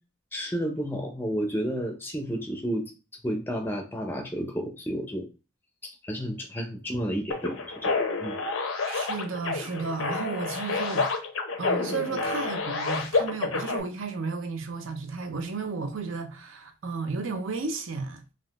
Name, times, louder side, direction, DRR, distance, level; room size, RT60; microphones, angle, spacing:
voice 1, 0.3-2.9 3.2-5.3 6.0-7.9 8.2-8.4, equal, 10° left, 0.4 m, -31 dB
sound 1, 7.3-13.8, left 4 dB, 90° left, 0.6 m, -29 dB
voice 2, 8.9-11.1 11.6-18.2, right 4 dB, 80° right, 0.6 m, -33 dB
3.5 x 2.4 x 2.3 m
head